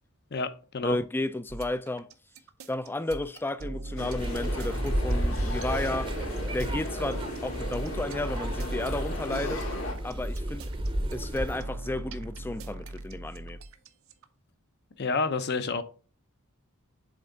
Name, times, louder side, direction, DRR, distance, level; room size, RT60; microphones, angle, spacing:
voice 1, 0.3-1.0 15.0-15.8, left 4 dB, 50° left, 0.7 m, -29 dB
voice 2, 0.8-2.1 2.7-6.2 6.5-9.6 10.0-10.7 11.1-13.6, left 2 dB, 10° left, 0.3 m, -33 dB
sound 1, 1.5-14.2, right 2 dB, 70° right, 0.7 m, -39 dB
sound 2, 4.0-9.9, left 2 dB, 75° left, 2.2 m, -37 dB
sound 3, 4.2-11.6, right 1 dB, 25° right, 0.7 m, -32 dB
7.6 x 3.4 x 3.9 m
head